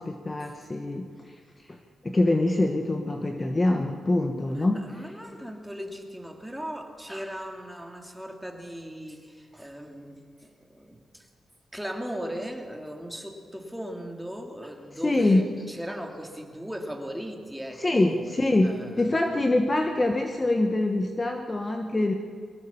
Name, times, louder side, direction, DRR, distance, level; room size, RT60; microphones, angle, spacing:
voice 1, 0.0-1.3 1.7-1.8 2.0-4.9 15.0-15.4 17.8-22.1, left 2 dB, 25° left, 4 dB, 1.2 m, -24 dB
voice 2, 4.5-11.3 11.7-18.2 18.6-19.4, equal, ahead, 2 dB, 2.5 m, -38 dB
22.0 x 18.0 x 7.1 m, 2.2 s
cardioid pair, 110°, 0 cm